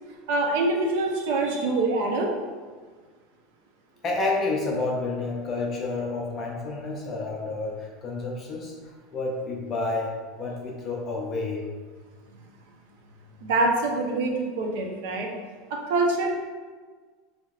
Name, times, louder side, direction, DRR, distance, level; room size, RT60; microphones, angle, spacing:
voice 1, 0.3-2.3 13.4-15.3 15.7-16.3, right 2 dB, 65° right, 0 dB, 0.7 m, -25 dB
voice 2, 4.0-8.7 9.1-11.6, left 3 dB, 25° left, -1 dB, 0.5 m, -29 dB
5.6 x 2.8 x 2.4 m, 1.5 s
supercardioid pair, 175°, 0 cm